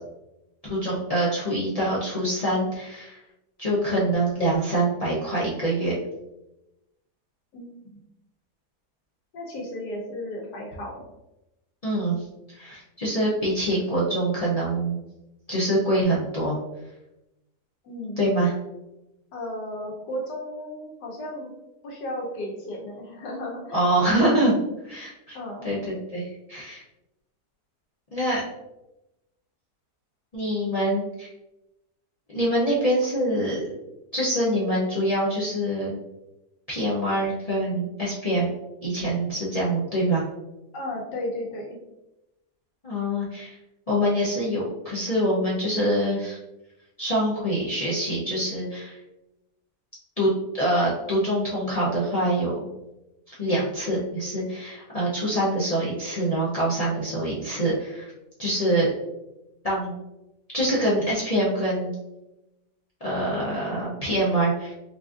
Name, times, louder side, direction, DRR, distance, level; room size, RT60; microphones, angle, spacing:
voice 1, 0.6-3.2 3.6-6.0 11.8-12.2 12.5-15.0 15.5-16.6 18.2-18.5 23.7-24.5 24.8-25.4 25.6-26.8 28.1-28.4 30.3-31.3 32.3-33.6 34.1-36.0 36.7-38.5 38.8-40.2 42.8-43.6 43.9-46.4 47.0-49.0 50.2-52.5 53.4-58.1 58.4-58.9 59.6-59.9 60.5-61.9 63.0-64.7, right 1 dB, 50° left, -7 dB, 0.4 m, -25 dB
voice 2, 7.5-8.0 9.3-11.0 17.8-18.2 19.3-21.5 21.8-23.8 25.3-25.7 40.7-41.8, left 1 dB, 90° left, -2 dB, 1.5 m, -34 dB
4.8 x 2.5 x 2.4 m, 0.95 s
omnidirectional pair, 1.7 m